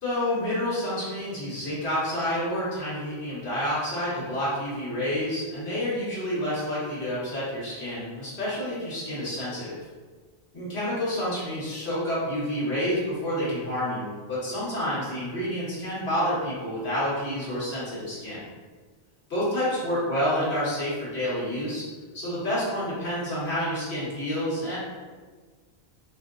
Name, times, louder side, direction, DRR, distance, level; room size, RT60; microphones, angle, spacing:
voice 1, 0.0-9.7 10.5-18.4 19.3-21.8 22.1-24.8, equal, 90° left, -9 dB, 1.7 m, -29 dB
5.0 x 2.8 x 2.5 m, 1.4 s
omnidirectional pair, 1.0 m